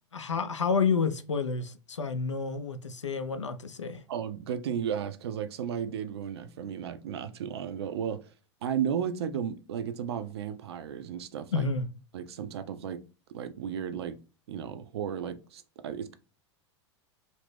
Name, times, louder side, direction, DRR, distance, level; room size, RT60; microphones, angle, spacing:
voice 1, 0.1-4.0 11.5-11.9, left 5 dB, 80° left, 0.4 m, -29 dB
voice 2, 4.1-8.3 8.6-11.7 12.1-13.0 13.3-14.2 14.5-16.1, right 8 dB, 60° right, 0.4 m, -34 dB
2.8 x 2.5 x 3.2 m
figure-of-eight pair, 85°, 15 cm